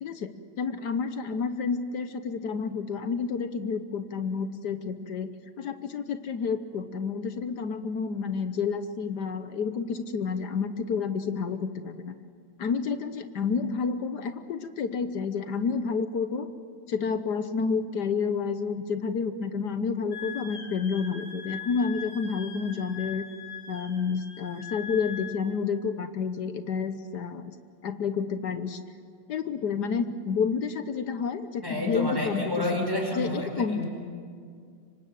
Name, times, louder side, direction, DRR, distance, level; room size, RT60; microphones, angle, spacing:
voice 1, 0.0-12.1 12.6-16.5 16.9-23.2 23.7-27.5 27.8-28.8 29.3-32.9 33.1-33.8, left 5 dB, 65° left, 9 dB, 1.5 m, -30 dB
Wind instrument woodwind instrument, 20.1-25.4, left 6 dB, 90° left, 3.4 m, -41 dB
voice 2, 31.6-33.8, left 1 dB, 10° right, 1 dB, 4.9 m, -30 dB
26.0 x 24.5 x 7.5 m, 2.2 s
omnidirectional pair, 2.0 m